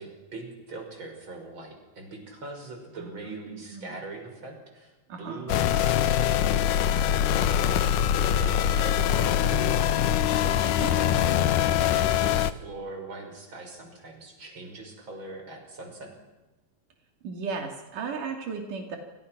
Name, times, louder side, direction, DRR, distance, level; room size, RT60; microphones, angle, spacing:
voice 1, 0.0-11.1 11.5-16.1, right 2 dB, 35° right, 3 dB, 6.6 m, -42 dB
voice 2, 3.0-4.0 5.1-5.6 10.8-11.3 17.2-19.0, right 5 dB, 85° right, 3 dB, 4.3 m, -36 dB
sound 1, 5.5-12.5, left 10 dB, 80° left, 2.6 m, -23 dB
28.5 x 26.5 x 6.1 m, 1.1 s
omnidirectional pair, 3.6 m